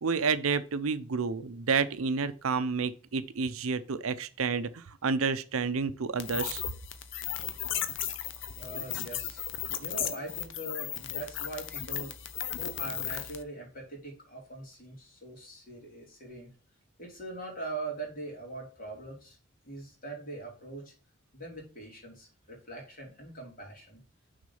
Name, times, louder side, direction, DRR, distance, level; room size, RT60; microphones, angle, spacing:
voice 1, 0.0-6.6, right 5 dB, 90° right, 0.6 m, -30 dB
sound 1, 6.2-13.4, left 10 dB, 60° left, 0.7 m, -35 dB
voice 2, 8.6-9.4 9.8-12.1 12.6-16.5 17.0-19.4 19.6-20.9 21.3-24.0, right 2 dB, 40° left, 3.2 m, -42 dB
6.3 x 3.9 x 5.4 m
head